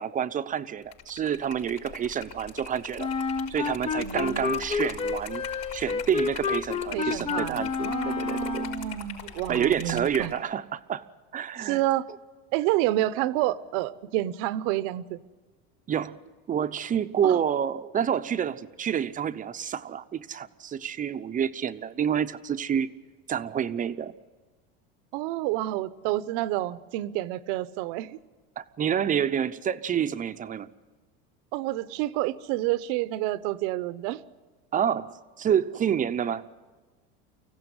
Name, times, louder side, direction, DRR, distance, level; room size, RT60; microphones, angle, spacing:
voice 1, 0.0-3.1 3.5-5.4 5.7-8.7 9.5-11.0 11.3-11.8 15.9-16.2 16.5-22.9 23.3-24.1 28.6-30.7 34.7-36.4, right 8 dB, 25° right, 11 dB, 0.7 m, -28 dB
Liquid, 0.8-10.4, left 8 dB, 60° left, 5.5 m, -42 dB
Wind instrument woodwind instrument, 3.0-8.9, left 5 dB, 20° left, 0.6 m, -30 dB
voice 2, 4.0-4.5 6.9-10.3 11.6-12.1 12.5-15.2 17.2-17.4 25.1-28.2 31.5-34.2, right 15 dB, 65° right, 16 dB, 0.9 m, -29 dB
24.5 x 15.5 x 9.6 m, 1.4 s
supercardioid pair, 125°, 30 cm